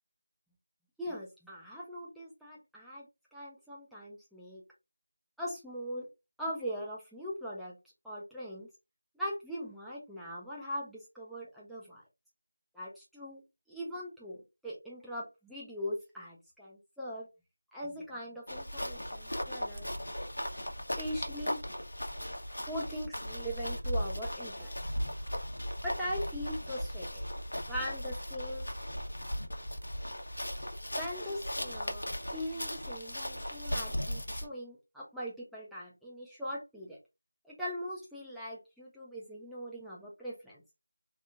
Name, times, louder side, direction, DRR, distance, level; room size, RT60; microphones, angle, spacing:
voice 1, 1.0-4.6 5.4-6.1 6.4-7.8 8.0-8.7 9.1-12.0 12.7-13.4 13.7-17.3 17.7-19.9 21.0-21.6 22.7-24.7 25.8-27.2 27.7-28.7 31.0-32.0 32.3-37.0 37.4-40.6, equal, ahead, -8 dB, 0.4 m, -40 dB
sound 1, 18.5-34.5, equal, 85° left, 0.9 m, -37 dB
2.8 x 2.5 x 2.4 m, 0.25 s
figure-of-eight pair, 175°, 0 cm